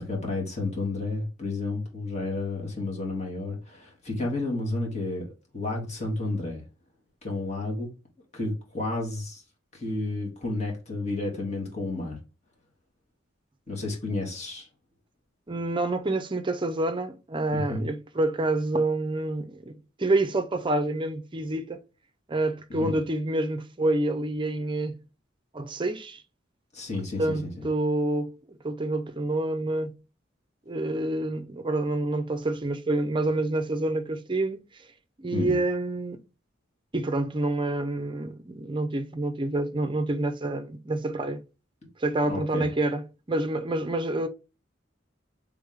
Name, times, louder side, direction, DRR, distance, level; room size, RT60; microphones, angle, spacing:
voice 1, 0.0-5.3 5.5-6.6 7.2-7.9 8.3-9.4 9.7-12.2 13.7-14.7 17.5-17.9 22.7-22.9 26.7-27.2 35.3-35.6 42.3-42.7, left 2 dB, 35° left, 1.8 m, -31 dB
voice 2, 15.5-21.8 22.3-25.0 25.5-26.2 27.2-29.9 30.7-34.6 35.2-36.2 36.9-41.4 42.0-44.3, right 2 dB, 25° right, 0.6 m, -28 dB
3.6 x 3.5 x 3.5 m
head